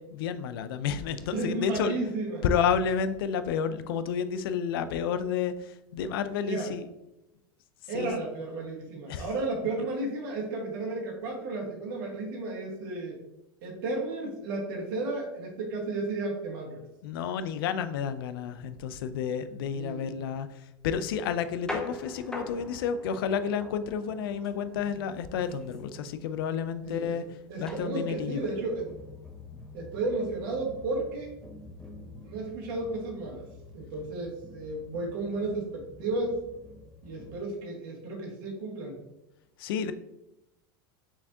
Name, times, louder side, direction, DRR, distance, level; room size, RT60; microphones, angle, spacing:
voice 1, 0.0-2.0 2.4-6.9 7.9-8.1 9.1-9.3 17.0-27.3 27.6-28.5 39.6-39.9, left 7 dB, 80° left, 12 dB, 0.4 m, -30 dB
voice 2, 1.3-2.4 6.5-6.7 7.9-13.2 13.6-16.8 19.7-20.1 26.8-27.2 27.5-28.9 29.7-31.3 32.2-33.5 33.7-36.4 37.0-39.0, right 2 dB, 70° right, -1 dB, 1.4 m, -33 dB
sound 1, 21.3-37.4, left 2 dB, 5° left, 0.8 m, -45 dB
4.5 x 3.4 x 2.7 m, 0.91 s
supercardioid pair, 110°, 12 cm